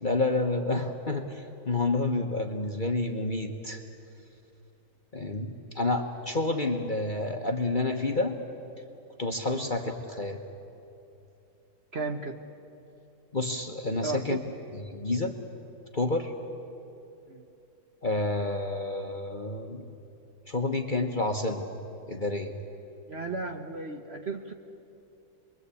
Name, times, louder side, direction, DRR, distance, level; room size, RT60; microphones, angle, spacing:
voice 1, 0.0-3.8 5.1-8.4 9.2-10.4 13.3-14.4 14.8-15.4 15.9-16.3 18.0-19.9 20.5-21.7 22.1-22.6, left 2 dB, 30° left, 3 dB, 1.1 m, -29 dB
voice 2, 11.9-12.4 14.0-14.4 17.3-17.5 23.1-24.5, right 3 dB, 40° right, 4 dB, 1.2 m, -35 dB
27.5 x 22.5 x 8.4 m, 2.9 s
omnidirectional pair, 1.9 m